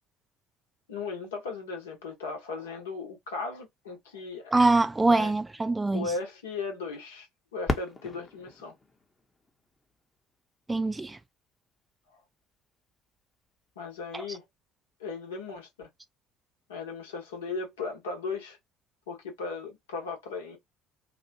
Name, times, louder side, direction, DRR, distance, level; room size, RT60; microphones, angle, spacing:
voice 1, 0.9-4.5 5.1-5.3 5.9-7.3 7.5-8.7 12.1-12.2 13.8-14.4 15.0-15.9 16.7-18.6 19.1-20.6, left 4 dB, 80° left, 1.0 m, -37 dB
voice 2, 4.5-6.1 10.7-11.2 14.1-14.2, right 2 dB, 15° right, 0.4 m, -24 dB
Fireworks, 7.6-10.4 11.1-11.2 11.9-12.3 14.2-14.4, left 2 dB, 20° left, 0.8 m, -36 dB
2.9 x 2.2 x 2.6 m
figure-of-eight pair, 60°, 0 cm